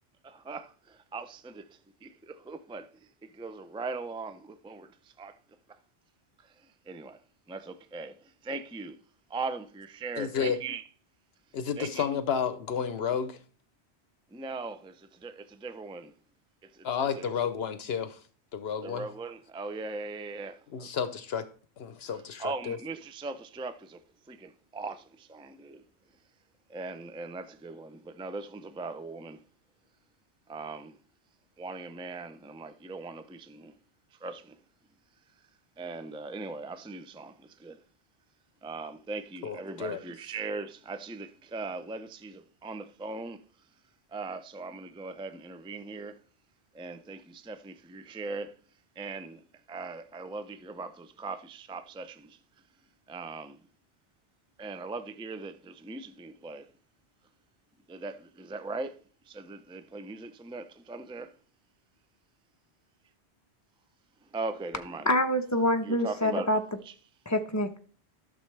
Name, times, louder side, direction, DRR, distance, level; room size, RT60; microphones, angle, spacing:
voice 1, 0.2-5.4 5.7-5.8 6.4-7.2 7.5-9.0 9.3-10.9 11.8-12.1 14.3-16.1 16.6-16.9 17.1-17.3 18.8-21.0 22.1-24.0 24.3-25.8 26.7-29.4 30.5-31.0 31.6-33.8 34.1-34.6 35.8-37.8 38.6-43.4 44.1-46.2 46.7-48.6 49.0-52.4 53.1-53.6 54.6-56.7 57.9-59.0 59.3-61.4 64.2-65.2 65.8-66.5 66.8-66.9, right 3 dB, 10° right, 0.3 m, -40 dB
voice 2, 10.2-10.6 11.5-13.4 16.8-18.2 18.5-19.1 20.7-21.5 21.8-22.8 39.4-40.0, left 7 dB, 75° left, 0.9 m, -31 dB
voice 3, 65.1-66.6 67.3-67.8, left 1 dB, 15° left, 0.9 m, -26 dB
12.0 x 6.7 x 3.3 m
omnidirectional pair, 1.1 m